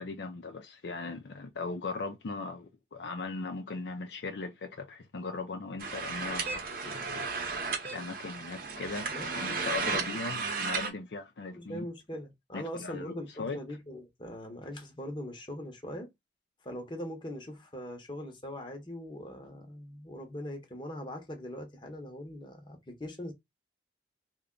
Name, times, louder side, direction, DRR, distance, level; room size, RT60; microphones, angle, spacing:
voice 1, 0.0-7.3 7.9-11.9 12.5-13.6, left 3 dB, 65° left, 0.5 m, -39 dB
sound 1, 5.8-10.9, right 4 dB, 50° right, 0.8 m, -34 dB
voice 2, 11.6-16.1 16.6-23.3, left 1 dB, 25° left, 0.9 m, -41 dB
3.4 x 2.2 x 3.7 m
head